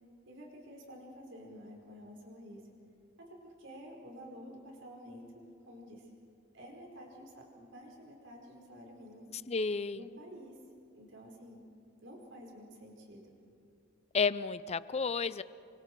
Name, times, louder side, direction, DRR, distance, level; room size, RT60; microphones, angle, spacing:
voice 1, 0.3-2.6 3.2-6.1 6.5-9.3 9.9-10.6 10.9-11.6 12.0-13.2, equal, 65° right, -1 dB, 5.0 m, -50 dB
voice 2, 9.5-10.0 14.1-15.4, left 5 dB, 35° left, 16 dB, 0.5 m, -31 dB
28.5 x 24.0 x 4.7 m, 2.6 s
head